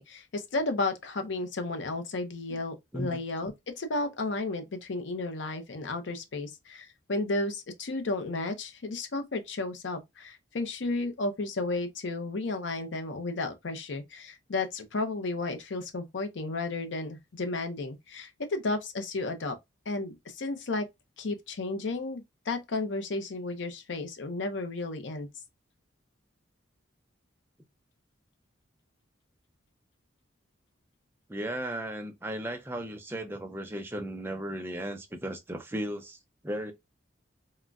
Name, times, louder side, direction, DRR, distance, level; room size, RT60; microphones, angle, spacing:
voice 1, 0.0-19.6 19.9-20.9 21.2-25.3, left 2 dB, 70° left, 0.6 m, -33 dB
voice 2, 31.3-36.2 36.4-36.7, right 1 dB, 10° right, 0.4 m, -35 dB
3.7 x 2.1 x 2.3 m
head